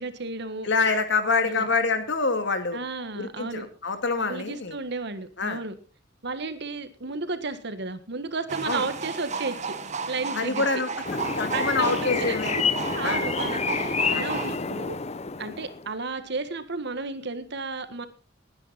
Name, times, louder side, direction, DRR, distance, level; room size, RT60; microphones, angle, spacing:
voice 1, 0.0-0.7 1.4-1.7 2.7-3.7 4.3-5.7 6.2-9.8 10.1-10.7 11.5-12.4 12.9-15.0 15.4-18.1, right 3 dB, 60° right, 11 dB, 1.7 m, -33 dB
voice 2, 0.6-2.8 3.2-4.8 5.4-5.6 8.6-8.9 10.3-10.9 11.4-12.5 13.0-13.3 14.1-14.3, left 4 dB, 65° left, 8 dB, 2.3 m, -26 dB
sound 1, 8.5-14.5, right 5 dB, 40° right, 1.4 m, -33 dB
sound 2, 11.0-15.9, left 5 dB, 35° left, 0.8 m, -28 dB
19.0 x 9.8 x 4.3 m, 0.35 s
head